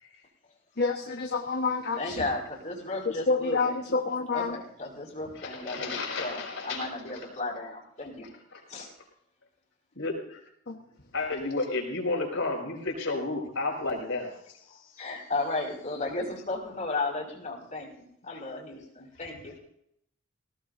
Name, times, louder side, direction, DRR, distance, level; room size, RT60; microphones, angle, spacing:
voice 1, 0.8-2.3 3.0-4.6 10.7-10.8, left 4 dB, 55° left, 3 dB, 1.3 m, -28 dB
voice 2, 2.0-3.7 4.3-8.3 8.7-8.9 15.0-17.9 18.2-19.5, left 2 dB, 40° left, -3 dB, 5.4 m, -34 dB
voice 3, 5.4-6.9 7.1-7.2 8.5-8.6 10.0-10.4 11.1-14.4 14.7-15.0, left 3 dB, 70° left, 2 dB, 5.5 m, -32 dB
20.5 x 18.0 x 2.7 m, 0.72 s
head